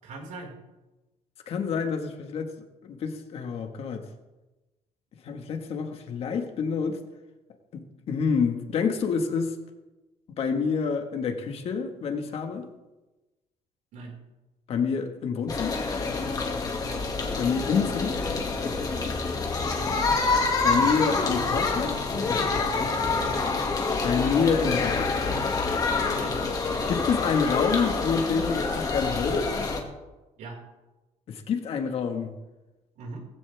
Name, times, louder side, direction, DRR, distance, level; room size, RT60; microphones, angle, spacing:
voice 1, 0.0-0.6 13.9-14.2 16.8-17.0 19.7-19.9 23.1-23.3 26.1-26.4 30.4-30.6 33.0-33.2, right 3 dB, 80° right, 0 dB, 5.2 m, -40 dB
voice 2, 1.5-2.5 2.8-4.0 5.2-7.0 7.7-9.5 10.4-12.6 14.7-15.8 17.4-18.1 20.6-22.0 24.0-25.2 26.9-29.5 31.3-32.3, left 5 dB, 50° left, 5 dB, 1.7 m, -27 dB
sound 1, 15.5-29.8, left 4 dB, 30° left, 2.2 m, -27 dB
19.5 x 15.0 x 3.5 m, 1.1 s
cardioid pair, 170°, 13 cm